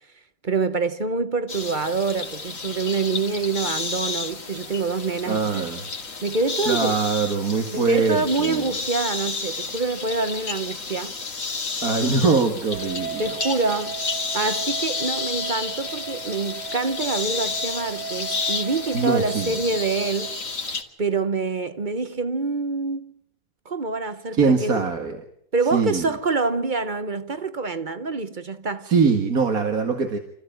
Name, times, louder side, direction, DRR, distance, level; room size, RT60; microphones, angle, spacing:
voice 1, 0.4-5.7 6.2-7.0 7.7-11.1 13.2-14.0 14.3-20.3 21.0-23.1 23.7-24.9 25.5-28.9, right 3 dB, 35° right, 1.1 m, -26 dB
sound 1, 1.5-20.8, left 4 dB, 65° left, 2.8 m, -31 dB
voice 2, 5.3-5.8 6.7-8.6 11.8-13.3 18.9-19.5 24.3-25.2 25.7-26.1 28.9-30.2, right 4 dB, 80° right, 2.4 m, -22 dB
sound 2, 12.7-20.4, right 6 dB, 55° right, 2.7 m, -36 dB
29.0 x 15.0 x 9.1 m
omnidirectional pair, 1.5 m